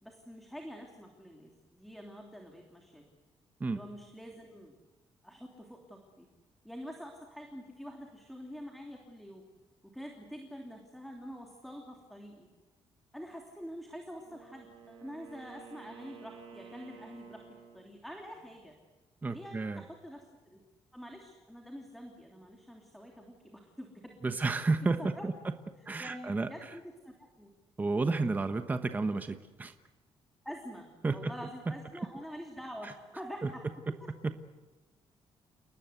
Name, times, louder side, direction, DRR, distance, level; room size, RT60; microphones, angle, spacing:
voice 1, 0.0-3.0 3.6-4.7 5.2-6.3 6.6-9.4 9.9-12.5 13.1-17.4 17.7-18.7 19.3-20.6 20.9-24.5 25.0-25.3 26.0-27.5 30.4-34.1, equal, ahead, 1 dB, 3.1 m, -46 dB
Wind instrument woodwind instrument, 14.1-18.0, right 6 dB, 65° right, 6.0 m, -52 dB
voice 2, 19.2-19.8 24.2-25.3 25.9-26.5 27.8-29.7 31.0-31.3 32.8-32.9 33.4-33.5, right 3 dB, 15° right, 8 dB, 1.1 m, -31 dB
29.5 x 19.5 x 8.2 m, 1.2 s
cardioid pair, 160°, 10 cm